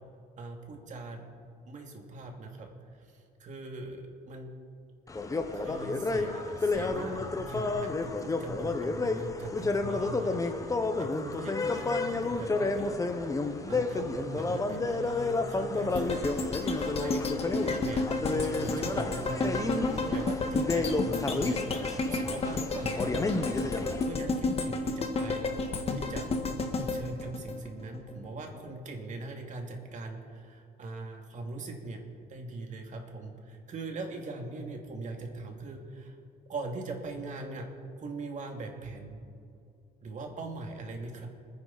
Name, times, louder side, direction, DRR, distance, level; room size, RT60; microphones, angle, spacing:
voice 1, 0.4-1.3 1.7-2.7 3.0-3.1 3.4-4.5 5.5-16.4 16.8-25.5 25.9-26.3 26.8-32.0 32.3-36.2 36.5-37.7 38.0-39.2 40.0-41.3, right 2 dB, 45° right, 2 dB, 2.6 m, -41 dB
sound 1, 5.1-24.0, left 3 dB, 20° left, 1.2 m, -31 dB
sound 2, 15.9-28.1 28.5-28.6, left 3 dB, 35° left, 1.7 m, -32 dB
26.0 x 9.9 x 4.3 m, 2.4 s
cardioid pair, 110°, 17 cm